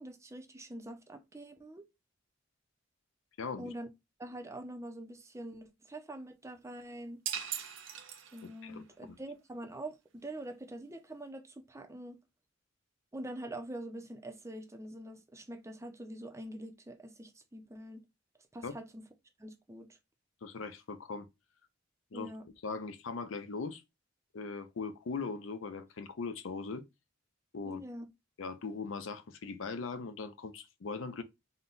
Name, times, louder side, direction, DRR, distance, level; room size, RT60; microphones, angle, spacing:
voice 1, 0.0-1.9 3.6-3.9 4.2-7.2 8.3-12.2 13.1-18.0 18.5-19.0 19.4-20.0 22.1-22.5 27.6-28.1, right 1 dB, 15° right, 0.6 m, -45 dB
voice 2, 3.4-3.7 8.6-8.8 18.6-18.7 20.4-21.3 22.1-22.3 22.6-23.8 24.3-26.8 27.5-27.8 28.4-31.2, left 4 dB, 85° left, 0.6 m, -39 dB
sound 1, 7.3-8.7, right 9 dB, 75° right, 0.7 m, -39 dB
3.8 x 2.2 x 3.8 m
head